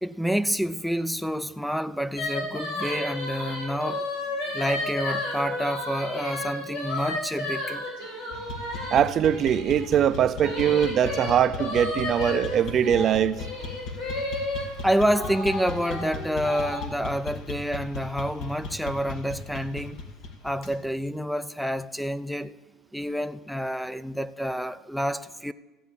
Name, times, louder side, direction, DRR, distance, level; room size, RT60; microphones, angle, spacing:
voice 1, 0.0-4.1 4.5-7.9 14.8-20.0 20.4-22.6 22.9-25.5, equal, ahead, 0.5 m, -28 dB
sound 1, 2.2-9.8 10.4-14.6 15.1-16.8, left 2 dB, 90° left, 5.0 m, -32 dB
sound 2, 8.3-20.8, left 4 dB, 70° left, 1.9 m, -37 dB
voice 2, 8.9-13.4, right 9 dB, 45° right, 0.6 m, -22 dB
14.0 x 8.2 x 7.0 m
supercardioid pair, 100°, 0 cm